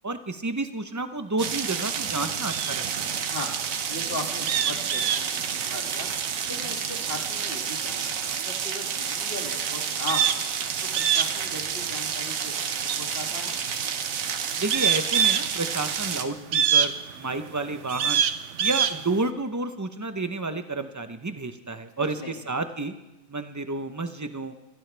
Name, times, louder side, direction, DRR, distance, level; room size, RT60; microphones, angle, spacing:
voice 1, 0.0-3.1 14.6-18.2 18.6-22.9 23.3-24.5, right 3 dB, 15° right, 9 dB, 0.7 m, -30 dB
sound 1, 1.4-16.3, right 7 dB, 80° right, 1.3 m, -30 dB
sound 2, 1.5-19.3, right 8 dB, 65° right, 1.0 m, -28 dB
voice 2, 3.9-6.1 6.5-10.5 11.0-13.6 22.2-22.3, left 1 dB, 45° left, 1 dB, 2.5 m, -38 dB
23.5 x 15.5 x 3.4 m, 1.0 s
omnidirectional pair, 1.4 m